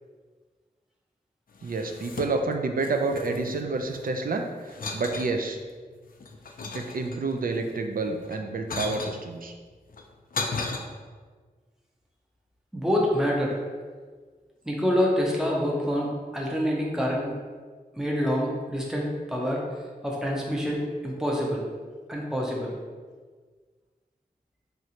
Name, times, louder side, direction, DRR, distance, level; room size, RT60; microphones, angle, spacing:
sound 1, 1.6-2.6 2.8-4.2 4.7-5.3 5.9-7.4 8.2-9.2 9.9-10.8, left 3 dB, 60° left, 0.4 m, -35 dB
voice 1, 1.6-5.6 6.7-9.5, right 3 dB, 60° right, 4 dB, 0.4 m, -29 dB
voice 2, 12.7-13.6 14.6-17.3 17.9-19.6 20.0-21.6 22.1-22.7, equal, 5° right, -3 dB, 0.7 m, -26 dB
3.2 x 2.5 x 2.8 m, 1.5 s
cardioid pair, 45°, 16 cm